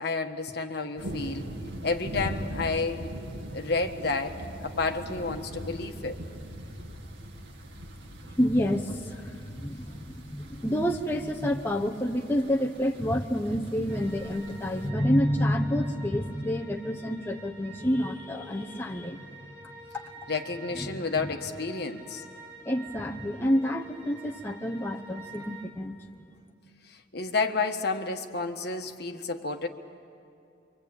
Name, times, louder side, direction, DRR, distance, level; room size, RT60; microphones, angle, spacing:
voice 1, 0.0-1.5 1.8-3.0 3.5-6.2 20.3-22.3 26.9-29.7, left 3 dB, 55° left, 5 dB, 1.4 m, -30 dB
sound 1, 1.0-14.9, right 1 dB, 75° right, 2.2 m, -41 dB
voice 2, 8.4-19.2 20.8-21.0 22.6-26.0, equal, 10° left, 0 dB, 0.9 m, -28 dB
sound 2, 13.9-25.6, right 3 dB, 10° right, 6.0 m, -48 dB
26.5 x 24.5 x 8.9 m, 2.5 s
head